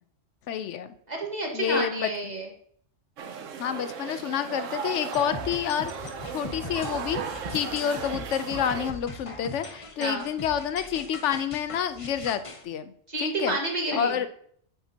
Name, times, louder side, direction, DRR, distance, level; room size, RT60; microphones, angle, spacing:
voice 1, 0.5-0.9 1.5-2.1 3.6-5.9 6.3-7.2 7.5-12.9 13.2-13.6 13.9-14.3, left 8 dB, 75° left, 11 dB, 0.9 m, -28 dB
voice 2, 1.1-2.5 6.4-6.6 10.0-10.2 13.1-14.2, right 2 dB, 35° right, 0 dB, 1.6 m, -30 dB
sound 1, 3.2-8.9, right 6 dB, 90° right, 1.2 m, -36 dB
sound 2, 5.1-12.6, left 3 dB, 30° left, 0.9 m, -40 dB
9.3 x 7.3 x 2.8 m, 0.63 s
omnidirectional pair, 1.3 m